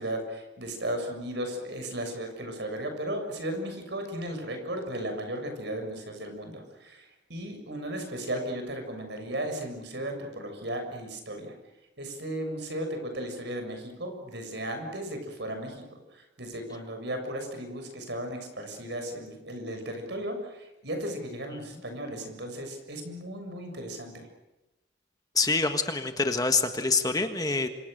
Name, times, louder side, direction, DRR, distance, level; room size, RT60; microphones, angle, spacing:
voice 1, 0.0-11.5 12.0-24.3, right 1 dB, 65° right, 5 dB, 7.0 m, -35 dB
voice 2, 25.3-27.7, left 3 dB, 20° left, 6 dB, 1.6 m, -26 dB
29.0 x 26.5 x 6.8 m, 0.97 s
head